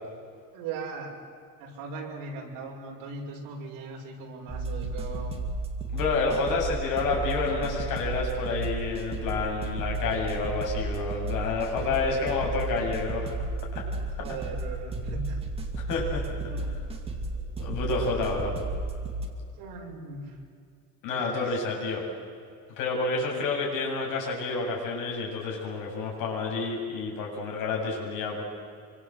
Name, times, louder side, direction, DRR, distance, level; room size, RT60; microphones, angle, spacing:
voice 1, 0.5-1.1 1.6-5.4 11.7-12.2 14.2-15.4 16.4-16.7 17.2-17.4 19.6-20.4 21.1-21.6, right 3 dB, 70° right, 0 dB, 6.6 m, -39 dB
sound 1, 4.5-19.3, right 2 dB, 15° right, 2.3 m, -33 dB
voice 2, 5.9-13.3 13.7-13.9 15.8-16.3 17.6-18.5 21.0-22.0 22.8-28.4, left 3 dB, 65° left, -1 dB, 7.9 m, -29 dB
26.5 x 25.0 x 8.0 m, 2.3 s
cardioid pair, 175°, 34 cm